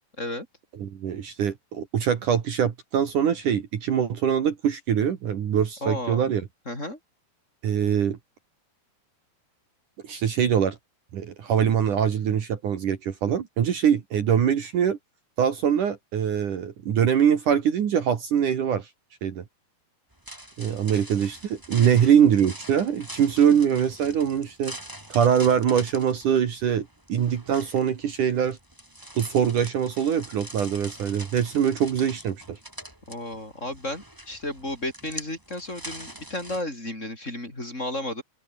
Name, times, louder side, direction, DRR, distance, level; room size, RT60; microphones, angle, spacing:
voice 1, 0.8-6.5 7.6-8.2 10.0-10.8 11.1-15.0 15.4-18.9 19.2-19.4 20.6-24.8 25.1-28.6 29.2-32.6, right 8 dB, 55° right, 3.2 m, -23 dB
voice 2, 5.8-6.3 6.7-7.0 21.8-22.1 33.1-38.2, left 1 dB, 15° left, 7.3 m, -33 dB
sound 1, 20.1-36.6, right 1 dB, 5° right, 5.2 m, -44 dB
open air
omnidirectional pair, 4.7 m